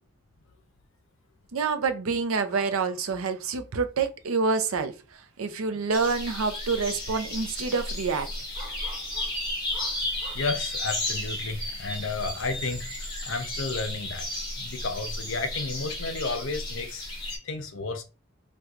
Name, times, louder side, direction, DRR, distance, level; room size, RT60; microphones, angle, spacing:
voice 1, 1.5-8.3, right 4 dB, 75° right, 0.5 m, -27 dB
sound 1, 2.3-3.1 5.1-5.2 5.5-5.6 6.3-6.5 6.8-6.9 8.5-10.4, equal, ahead, 1.2 m, -47 dB
sound 2, 5.9-17.4, left 1 dB, 20° left, 1.2 m, -34 dB
voice 2, 10.3-14.3 14.6-18.0, left 3 dB, 60° left, 0.6 m, -32 dB
4.3 x 2.2 x 2.4 m
head